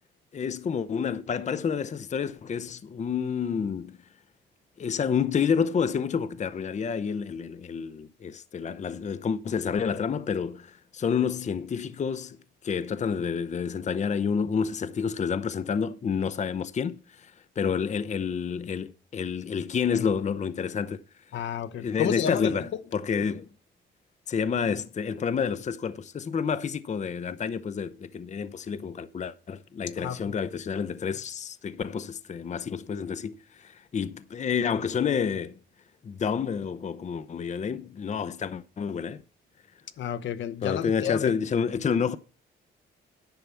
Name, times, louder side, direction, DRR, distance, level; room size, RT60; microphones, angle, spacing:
voice 1, 0.3-4.0 4.8-12.4 12.6-21.0 21.8-23.5 24.3-35.5 36.0-39.2 40.6-42.2, left 6 dB, 35° left, 0.7 m, -29 dB
voice 2, 21.3-22.5 30.0-30.2 40.0-41.3, left 9 dB, 70° left, 1.0 m, -30 dB
10.5 x 5.8 x 6.9 m
cardioid pair, 90°, 20 cm